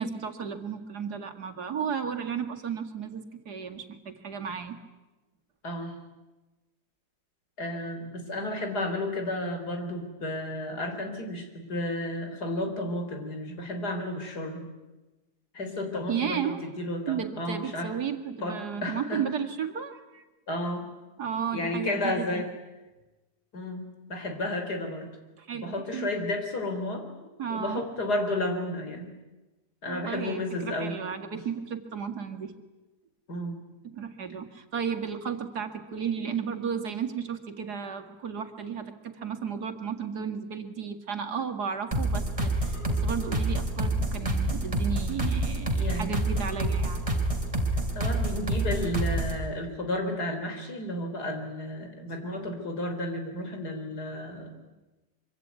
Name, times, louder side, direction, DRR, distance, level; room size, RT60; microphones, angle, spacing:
voice 1, 0.0-4.8 16.1-16.6 17.1-20.2 21.2-22.5 25.4-26.1 27.4-27.8 29.9-32.5 33.8-47.0, right 7 dB, 75° right, 6 dB, 2.5 m, -34 dB
voice 2, 5.6-5.9 7.6-14.7 15.5-17.9 18.4-19.2 20.5-20.9 21.5-22.5 23.5-25.1 25.5-29.1 29.8-30.9 33.3-33.6 45.7-46.2 47.9-54.5, left 1 dB, 75° left, 5 dB, 4.5 m, -32 dB
sound 1, 41.9-49.4, right 1 dB, 20° right, 3.8 m, -28 dB
25.0 x 24.5 x 9.4 m, 1.1 s
omnidirectional pair, 1.7 m